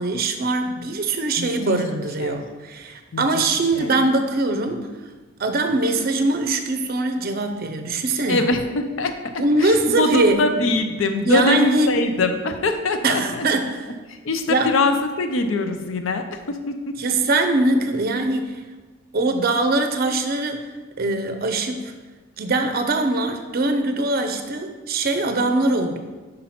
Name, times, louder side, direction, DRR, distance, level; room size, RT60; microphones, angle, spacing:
voice 1, 0.0-4.9 5.4-8.5 9.4-10.5 11.2-12.0 13.0-13.9 14.5-14.7 17.0-18.6 19.1-20.7 21.0-21.9 22.4-26.0, right 2 dB, 45° right, 7 dB, 0.5 m, -22 dB
voice 2, 1.4-1.8 2.2-2.4 3.1-3.2 3.7-3.9 8.3-9.1 9.6-13.2 14.1-16.7, left 2 dB, 70° left, 7 dB, 0.6 m, -22 dB
5.7 x 5.2 x 4.2 m, 1.3 s
head